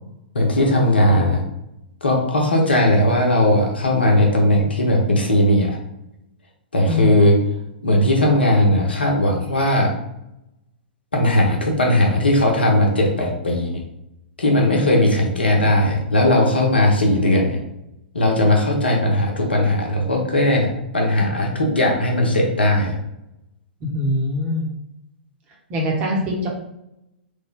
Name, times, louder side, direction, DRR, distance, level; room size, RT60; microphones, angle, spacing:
voice 1, 0.3-1.4 2.0-5.8 6.7-7.4 7.8-9.9 11.1-13.8 14.4-17.6 18.1-22.9, left 1 dB, 75° left, 0 dB, 0.8 m, -18 dB
voice 2, 23.8-24.7 25.7-26.5, left 1 dB, 25° right, -1 dB, 0.9 m, -23 dB
3.3 x 2.2 x 3.6 m, 0.84 s
figure-of-eight pair, 110°, 6 cm